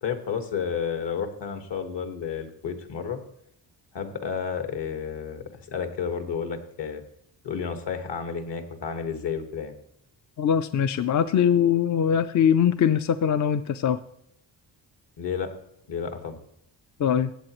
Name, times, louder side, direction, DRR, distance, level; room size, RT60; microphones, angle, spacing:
voice 1, 0.0-3.2 3.9-7.0 7.4-9.7 15.2-15.5 15.9-16.4, left 6 dB, 65° left, 6 dB, 1.7 m, -31 dB
voice 2, 10.4-14.0 17.0-17.3, left 8 dB, 45° left, 11 dB, 0.4 m, -22 dB
15.5 x 8.6 x 3.0 m, 0.76 s
wide cardioid pair, 155°, 44 cm